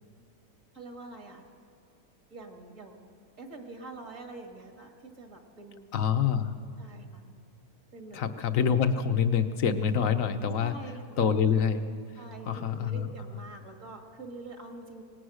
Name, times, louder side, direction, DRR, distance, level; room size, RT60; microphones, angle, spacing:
voice 1, 0.7-1.4 2.3-3.0 3.4-5.9 6.8-7.3 7.9-8.3 10.6-11.4 12.2-15.0, right 2 dB, 55° right, 3 dB, 2.6 m, -45 dB
voice 2, 5.9-6.5 8.1-10.7 11.2-11.8 12.5-13.1, left 7 dB, 60° left, 9 dB, 1.3 m, -26 dB
24.5 x 19.0 x 6.4 m, 2.4 s
omnidirectional pair, 1.6 m